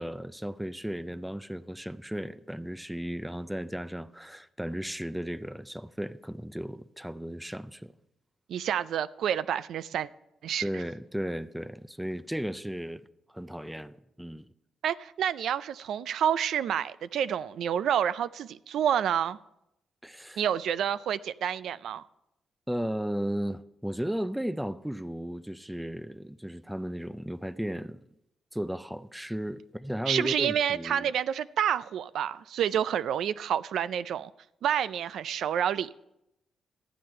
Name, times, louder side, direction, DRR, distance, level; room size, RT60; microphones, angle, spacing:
voice 1, 0.0-7.9 10.6-13.0 13.3-14.5 20.0-20.4 22.7-28.0 28.5-31.1, equal, 5° right, 0.4 m, -35 dB
voice 2, 8.5-10.1 10.4-10.8 14.8-19.4 20.4-22.1 30.1-34.3 34.6-35.9, right 9 dB, 80° right, 0.3 m, -29 dB
13.5 x 9.3 x 4.4 m
cardioid pair, 130°, 0 cm